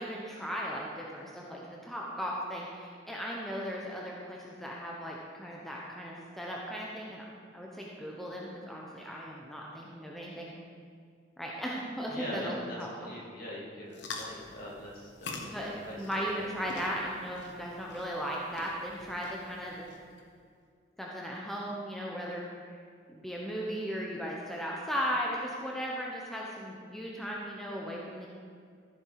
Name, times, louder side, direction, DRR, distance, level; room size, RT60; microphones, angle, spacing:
voice 1, 0.0-7.2 7.5-10.6 11.4-12.9 15.4-19.9 21.0-22.5 23.1-28.3, equal, ahead, -3 dB, 1.0 m, -37 dB
voice 2, 12.1-16.6, equal, 45° left, -4 dB, 2.5 m, -42 dB
sound 1, 13.9-20.2, left 3 dB, 65° left, 1.2 m, -46 dB
14.0 x 7.4 x 4.9 m, 2.2 s
head